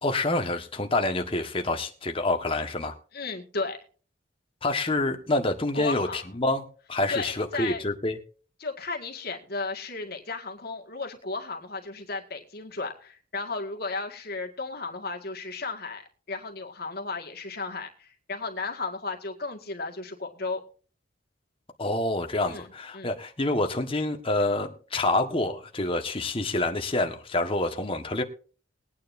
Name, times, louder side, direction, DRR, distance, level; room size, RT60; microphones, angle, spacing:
voice 1, 0.0-2.9 4.6-8.2 21.8-28.2, left 2 dB, 30° left, 5 dB, 1.5 m, -27 dB
voice 2, 3.1-3.8 5.7-6.2 7.1-7.8 8.6-16.0 16.3-20.6 22.5-22.7 22.9-23.1, left 3 dB, 55° left, 3 dB, 1.9 m, -34 dB
21.0 x 9.4 x 2.7 m, 0.39 s
head